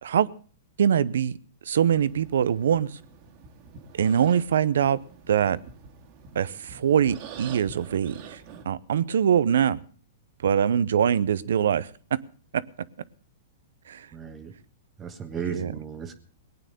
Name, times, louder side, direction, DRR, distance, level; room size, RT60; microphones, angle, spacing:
voice 1, 0.8-1.4 1.7-3.0 3.9-5.0 5.3-5.6 6.3-8.4 8.7-9.8 10.4-11.9 12.5-12.6 13.9-14.1 15.5-15.7, right 8 dB, 75° right, 19 dB, 0.7 m, -23 dB
sound 1, 1.9-8.6, right 6 dB, 50° right, 2.1 m, -46 dB
voice 2, 14.1-14.5 15.0-16.1, right 6 dB, 20° right, 8 dB, 1.4 m, -35 dB
18.5 x 9.1 x 6.6 m, 0.43 s
hypercardioid pair, 125°, 0 cm